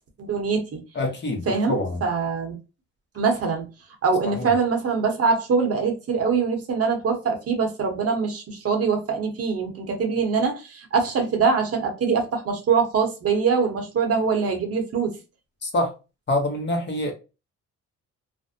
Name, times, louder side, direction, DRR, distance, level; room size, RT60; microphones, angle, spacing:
voice 1, 0.2-0.8 1.5-2.6 3.1-3.7 4.0-15.1, right 5 dB, 50° right, 0.9 m, -23 dB
voice 2, 0.9-2.0 4.4-4.5 15.6-15.9 16.3-17.1, left 1 dB, 35° left, 0.9 m, -25 dB
2.5 x 2.1 x 2.5 m
cardioid pair, 90°, 30 cm